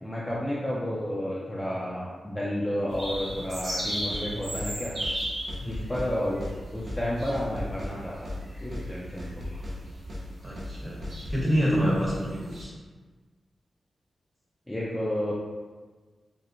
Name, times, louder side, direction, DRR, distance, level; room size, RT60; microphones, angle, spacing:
voice 1, 0.0-4.9 5.6-6.4 6.7-8.3 8.6-9.3 14.7-15.3, equal, 10° left, -6 dB, 0.5 m, -31 dB
sound 1, 2.9-12.6, equal, 85° right, 1.2 m, -37 dB
sound 2, 4.1-4.3 4.6-4.7 5.0-5.2 5.5-6.1 6.4-6.6 6.9-7.0 7.3-7.9 8.2-8.4 8.7-8.9 9.2-9.8 10.1-10.3 10.6-10.7 11.0-11.4, left 1 dB, 50° right, 0.7 m, -37 dB
voice 2, 5.6-6.0 10.4-11.0 11.3-12.7, equal, 15° right, -6 dB, 1.1 m, -27 dB
3.1 x 2.9 x 2.6 m, 1.4 s
wide cardioid pair, 85°, 0 cm